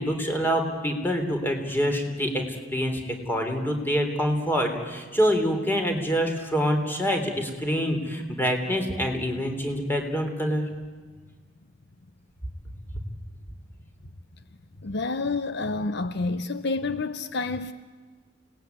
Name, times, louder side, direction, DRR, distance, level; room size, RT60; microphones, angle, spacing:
voice 1, 0.0-10.6 12.9-13.0, equal, 10° left, 3.4 m, -26 dB
voice 2, 14.8-17.7, left 3 dB, 60° left, 0.8 m, -28 dB
28.0 x 19.0 x 9.4 m
head